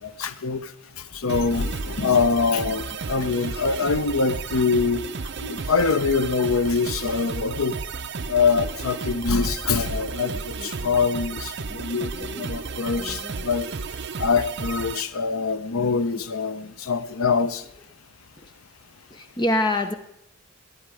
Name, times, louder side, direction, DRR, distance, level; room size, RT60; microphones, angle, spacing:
voice 1, 0.0-0.7 1.0-5.0 5.4-7.7 8.3-13.7 14.2-17.6, left 4 dB, 80° left, 0.8 m, -24 dB
sound 1, 1.3-15.0, right 4 dB, 55° right, 0.7 m, -33 dB
voice 2, 10.3-10.9 11.7-11.8 12.1-12.6 13.0-13.5 18.4-18.5 19.1-19.9, left 1 dB, 20° left, 0.8 m, -29 dB
20.5 x 9.5 x 4.9 m
head